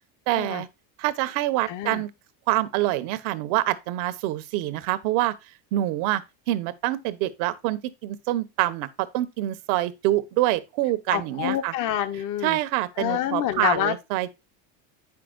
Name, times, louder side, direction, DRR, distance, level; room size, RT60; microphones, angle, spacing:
voice 1, 0.3-0.7 1.0-2.1 2.5-5.3 5.7-6.2 6.5-11.7 12.4-14.3, right 15 dB, 80° right, 1.1 m, -26 dB
voice 2, 1.7-2.0 11.1-12.6 13.0-13.9, left 11 dB, 45° left, 0.7 m, -27 dB
8.5 x 5.9 x 2.4 m
supercardioid pair, 120°, 43 cm